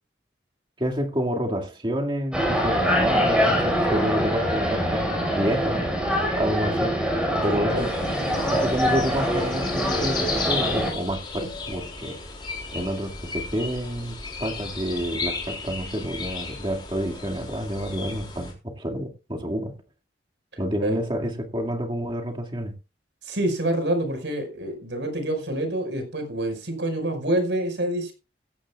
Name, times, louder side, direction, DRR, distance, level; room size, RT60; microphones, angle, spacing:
voice 1, 0.8-5.8 6.4-7.0 7.4-7.9 8.5-12.2 12.7-19.7 20.6-22.7, equal, 25° right, 2.2 m, -29 dB
sound 1, 2.3-10.9, equal, 5° right, 5.4 m, -24 dB
sound 2, 7.8-18.5, left 4 dB, 25° left, 4.1 m, -34 dB
voice 2, 23.2-28.1, right 1 dB, 80° right, 5.4 m, -27 dB
16.5 x 14.5 x 2.4 m
head